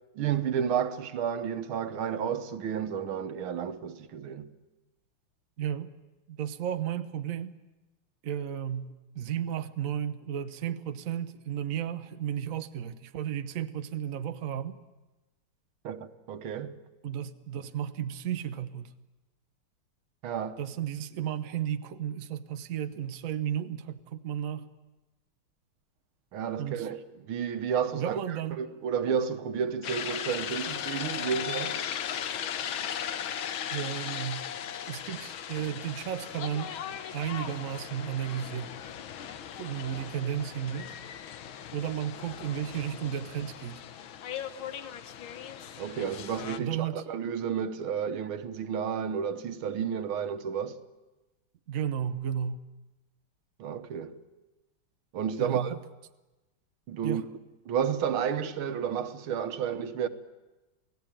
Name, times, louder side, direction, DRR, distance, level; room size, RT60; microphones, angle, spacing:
voice 1, 0.2-4.5 15.8-16.8 20.2-20.6 26.3-31.8 45.8-50.8 53.6-54.2 55.1-55.8 56.9-57.2 57.7-60.1, right 7 dB, 75° right, 1.9 m, -31 dB
voice 2, 5.6-5.9 6.3-7.6 8.2-14.8 17.0-18.9 20.6-24.7 26.6-26.9 27.9-28.6 33.7-34.5 34.8-36.8 37.1-38.7 39.6-40.9 41.7-43.8 46.6-47.0 51.7-52.6 55.4-55.8 57.0-57.2, right 9 dB, 50° right, 1.0 m, -33 dB
sound 1, 29.8-46.6, left 9 dB, 70° left, 1.8 m, -37 dB
28.5 x 17.5 x 9.0 m
omnidirectional pair, 2.4 m